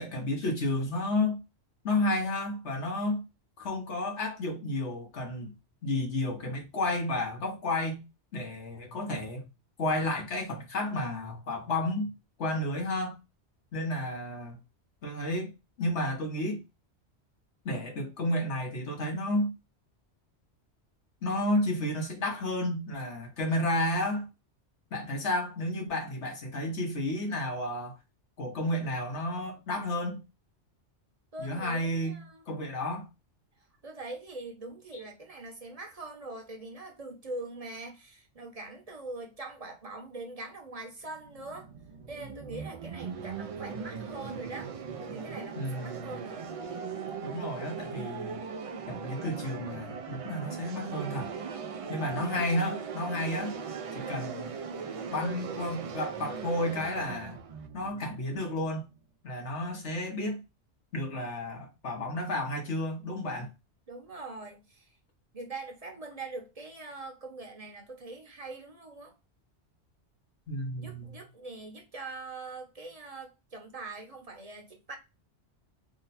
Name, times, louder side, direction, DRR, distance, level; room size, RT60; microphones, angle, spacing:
voice 1, 0.0-1.4 1.8-3.2 3.6-5.5 5.8-8.0 8.3-9.5 9.8-12.1 12.4-13.2 13.7-14.6 15.0-15.5 15.8-16.6 17.6-19.5 21.2-24.3 24.9-28.0 28.4-30.2 31.4-32.2 32.5-33.1 34.9-35.1 45.5-46.2 47.2-48.4 48.9-51.3 51.9-53.5 53.9-54.5 55.1-57.4 57.7-58.9 59.2-60.4 60.9-63.5 70.5-71.2, left 1 dB, 80° left, 1.5 m, -31 dB
voice 2, 31.3-32.4 33.6-41.7 42.1-44.7 45.0-46.5 63.9-64.9 65.3-69.1 70.8-75.0, right 2 dB, 35° right, 0.8 m, -43 dB
sound 1, 41.1-58.9, right 6 dB, 65° right, 0.3 m, -39 dB
3.7 x 2.2 x 4.0 m
omnidirectional pair, 1.2 m